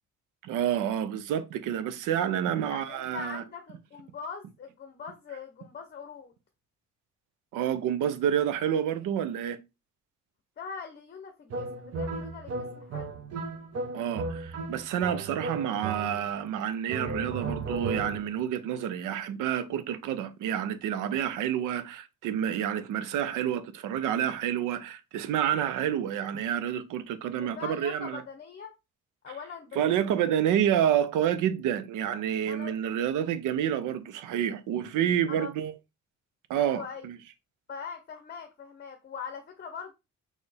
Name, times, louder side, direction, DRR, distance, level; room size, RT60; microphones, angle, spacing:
voice 1, 0.4-3.4 7.5-9.6 13.9-28.2 29.8-35.7 36.5-37.2, right 9 dB, 90° right, 0.6 m, -29 dB
voice 2, 2.6-6.3 10.6-13.2 27.4-28.7 29.2-29.8 30.2-30.3 32.5-32.7 35.3-35.5 36.6-37.1 37.7-39.9, left 6 dB, 35° left, 0.7 m, -42 dB
sound 1, 11.5-16.5 16.9-18.4, right 3 dB, 55° right, 1.1 m, -35 dB
4.3 x 3.2 x 3.3 m
cardioid pair, 90°, 30 cm